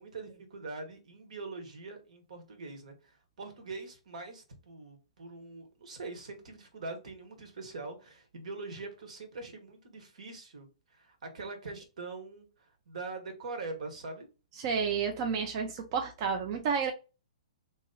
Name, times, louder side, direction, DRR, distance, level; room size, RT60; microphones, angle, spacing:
voice 1, 0.0-14.3, right 3 dB, 75° right, 1.3 m, -43 dB
voice 2, 14.6-16.9, right 6 dB, 40° right, 0.6 m, -31 dB
2.9 x 2.9 x 3.7 m
hypercardioid pair, 140°, 4 cm